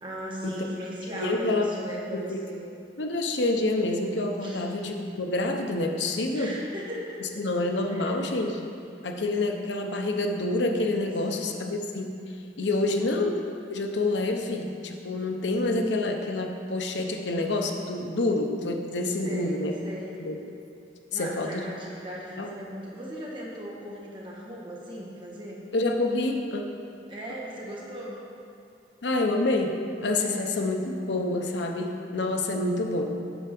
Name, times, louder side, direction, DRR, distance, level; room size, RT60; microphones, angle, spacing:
voice 1, 0.0-2.6 4.4-4.6 6.3-7.2 7.9-8.4 11.3-11.6 12.8-13.0 19.0-20.2 21.1-25.6 27.1-28.2 30.2-30.6, equal, 30° right, -5 dB, 1.5 m, -38 dB
voice 2, 1.1-2.4 3.0-6.5 7.4-8.7 9.0-12.1 12.6-13.3 13.7-19.7 20.2-20.4 21.1-21.6 22.4-22.6 25.7-26.6 29.0-33.2, left 2 dB, 90° left, 3 dB, 0.8 m, -27 dB
8.1 x 4.6 x 6.8 m, 2.4 s
head